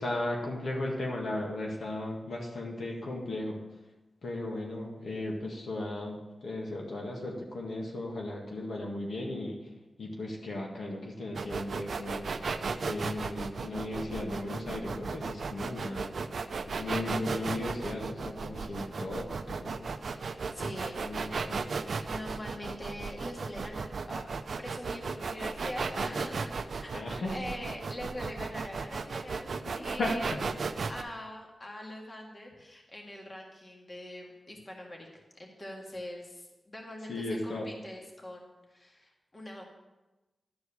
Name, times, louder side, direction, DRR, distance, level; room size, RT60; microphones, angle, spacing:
voice 1, 0.0-3.6 4.2-9.6 10.0-12.3 12.8-16.2 16.7-19.9 21.0-21.7 26.9-27.4 29.6-30.4 37.1-37.7, left 1 dB, 70° left, -1 dB, 1.9 m, -36 dB
sound 1, 11.3-31.0, right 4 dB, 65° right, 0.5 m, -35 dB
voice 2, 20.5-21.0 21.7-24.2 24.6-26.9 27.2-29.5 29.8-30.4 30.9-39.6, left 1 dB, 30° left, 0 dB, 1.9 m, -43 dB
12.0 x 4.7 x 7.2 m, 1.1 s
wide cardioid pair, 95°, 0 cm